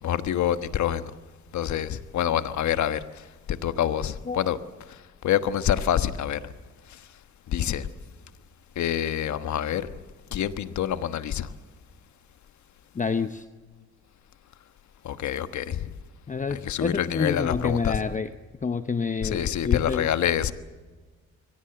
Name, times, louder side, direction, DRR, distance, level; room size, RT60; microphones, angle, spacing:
voice 1, 0.0-1.1 1.5-4.6 4.9-6.5 6.9-7.1 7.5-7.9 8.7-9.9 10.3-11.5 15.0-15.9 16.5-18.0 19.2-20.5, left 10 dB, 70° left, 1.3 m, -27 dB
voice 2, 12.9-13.4 16.3-18.3 18.6-20.1, left 5 dB, 25° left, 0.8 m, -28 dB
23.5 x 17.5 x 7.9 m
cardioid pair, 90°, 30 cm